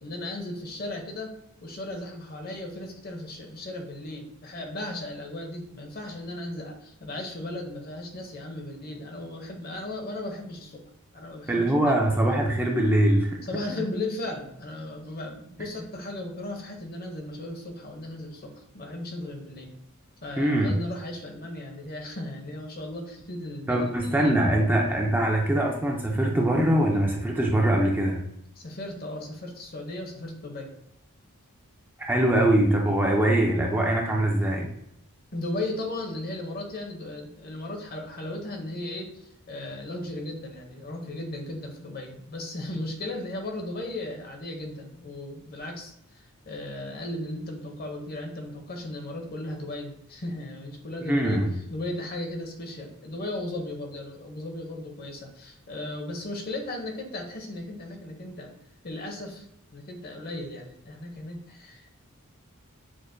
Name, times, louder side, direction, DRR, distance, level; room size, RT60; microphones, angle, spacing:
voice 1, 0.0-10.8 11.1-11.7 13.4-19.7 20.2-24.3 28.6-30.7 35.3-51.4 51.7-58.5 58.8-59.5 59.7-61.9, left 1 dB, 45° left, 3 dB, 0.7 m, -36 dB
voice 2, 11.5-13.4 13.7-13.9 20.4-20.7 23.7-28.2 32.1-34.7 51.1-51.5, right 1 dB, 10° right, -1 dB, 0.4 m, -23 dB
6.2 x 2.1 x 2.6 m, 0.76 s
head